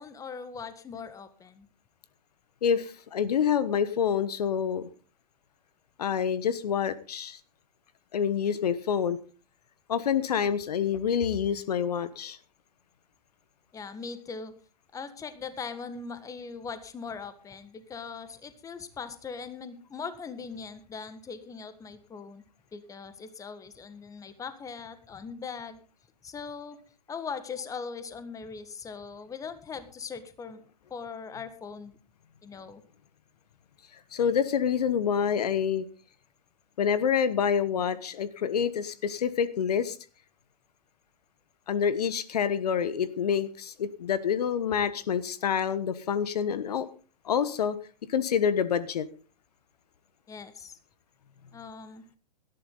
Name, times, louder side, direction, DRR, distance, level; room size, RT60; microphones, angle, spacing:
voice 1, 0.0-1.7 13.7-14.5 14.9-22.4 22.7-25.8 26.2-26.8 27.1-30.6 30.9-32.0 32.4-32.8 50.3-50.7 51.5-52.0, left 5 dB, 15° left, 12 dB, 1.7 m, -40 dB
voice 2, 2.6-4.9 6.0-7.4 8.1-9.2 9.9-12.4 34.1-35.9 36.8-40.0 41.7-46.9 47.2-47.8 48.1-49.1, left 7 dB, 65° left, 15 dB, 1.2 m, -27 dB
18.0 x 13.0 x 3.9 m, 0.36 s
hypercardioid pair, 110°, 21 cm